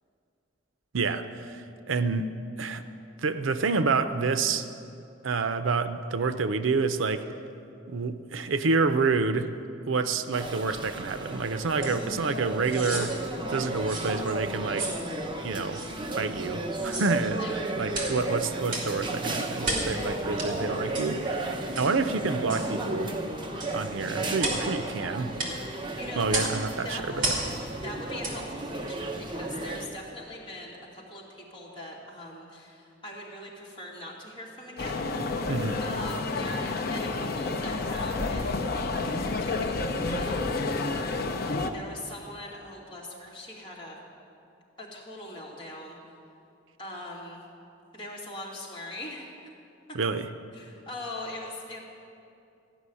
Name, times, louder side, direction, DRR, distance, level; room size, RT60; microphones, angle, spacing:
voice 1, 0.9-2.8 3.2-4.7 5.2-7.3 7.9-9.5 9.9-13.2 13.5-14.9 15.4-15.8 16.1-17.4 17.8-23.1 23.7-25.3 26.2-27.3 35.5-35.8 49.9-50.3, right 4 dB, 80° right, 10 dB, 0.6 m, -28 dB
sound 1, 10.3-29.9, right 2 dB, 25° right, 0.9 m, -34 dB
sound 2, 11.8-12.0 12.6-13.1 13.9-14.1 14.8-15.0 15.7-15.9 16.8-17.1 17.9-18.2 18.7-18.9 19.6-19.9 20.4-20.5 20.9-21.1 21.7-21.9 22.5-22.7 23.6-23.8 24.4-24.7 25.4-25.6 26.3-26.6 27.2-27.5 28.2-28.4 28.9-29.0, right 2 dB, 45° right, 2.8 m, -32 dB
voice 2, 17.4-17.9 26.0-26.5 26.8-27.4 27.8-35.0 35.8-41.3 41.7-44.0 44.8-46.0 46.8-47.4 47.9-49.3 50.5-51.8, left 1 dB, 25° left, -5 dB, 2.6 m, -41 dB
sound 3, 34.8-41.7, left 3 dB, 50° left, 0.7 m, -30 dB
14.5 x 6.1 x 9.7 m, 2.6 s
head